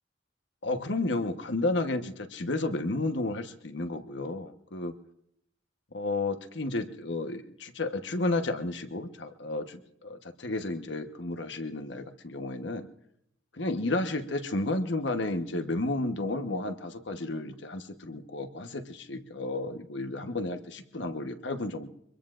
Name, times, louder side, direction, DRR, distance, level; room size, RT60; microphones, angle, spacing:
voice 1, 0.6-4.9 5.9-12.9 13.5-21.9, left 2 dB, 65° left, 7 dB, 1.1 m, -32 dB
24.5 x 22.0 x 2.5 m, 0.74 s
head